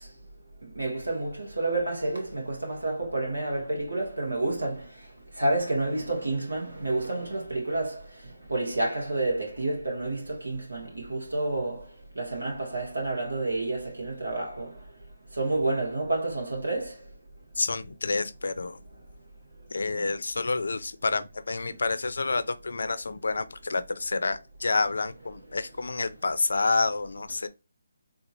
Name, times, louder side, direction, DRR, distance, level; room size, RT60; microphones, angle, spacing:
voice 1, 0.8-4.8 5.4-8.0 8.5-11.8 12.2-14.7 15.4-16.9, right 2 dB, 90° right, 1.8 m, -29 dB
voice 2, 17.6-18.8 19.7-27.5, left 3 dB, 70° left, 0.5 m, -28 dB
3.5 x 2.9 x 2.5 m
figure-of-eight pair, 155°, 0 cm